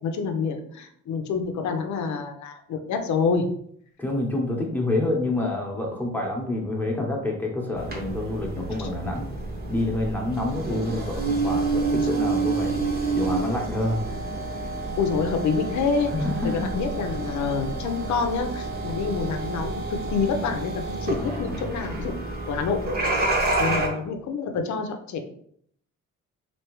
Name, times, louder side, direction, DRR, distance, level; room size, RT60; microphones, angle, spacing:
voice 1, 0.0-3.5 8.8-8.9 10.7-10.8 15.0-16.1 16.4-20.7 21.0-22.1 22.5-22.8 23.6-25.2, left 5 dB, 70° left, 6 dB, 0.7 m, -27 dB
voice 2, 4.0-9.3 9.7-12.8 13.1-14.0 16.1-16.8 21.1-21.6 23.5-23.8, left 2 dB, 5° left, -1 dB, 0.9 m, -28 dB
sound 1, 7.7-23.9, right 3 dB, 30° right, 1.0 m, -29 dB
3.2 x 2.8 x 3.0 m, 0.65 s
cardioid pair, 90°, 30 cm